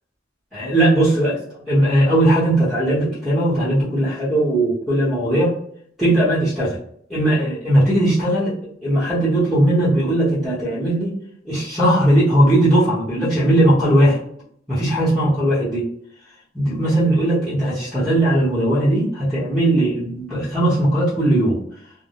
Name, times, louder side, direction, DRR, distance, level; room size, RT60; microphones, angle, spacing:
voice 1, 0.5-1.4 1.7-5.6 6.0-6.8 7.1-11.2 11.4-14.2 14.7-15.9 16.5-21.6, right 1 dB, ahead, -12 dB, 0.9 m, -18 dB
2.2 x 2.0 x 2.8 m, 0.64 s
head